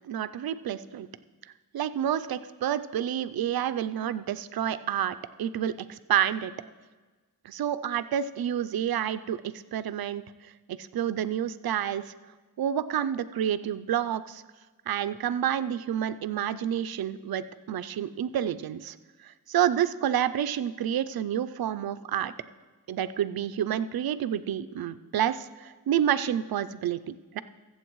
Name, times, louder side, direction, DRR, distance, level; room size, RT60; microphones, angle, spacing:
voice 1, 0.1-1.1 1.7-6.5 7.4-10.2 10.7-12.1 12.6-14.4 14.9-19.0 19.2-22.3 22.9-27.4, right 10 dB, 85° right, 14 dB, 0.5 m, -29 dB
22.5 x 8.0 x 3.1 m, 1.3 s
wide cardioid pair, 80°, 35 cm